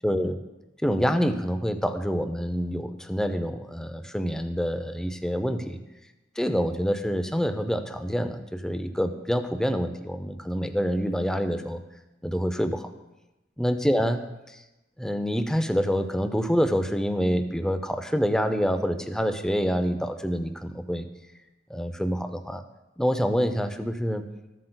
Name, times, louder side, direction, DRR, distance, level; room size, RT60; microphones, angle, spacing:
voice 1, 0.0-0.4 0.8-5.8 6.4-11.8 12.2-12.9 13.6-14.2 15.0-21.1 21.7-22.6 23.0-24.3, equal, 5° left, 8 dB, 0.4 m, -26 dB
14.0 x 7.7 x 2.2 m, 0.99 s
head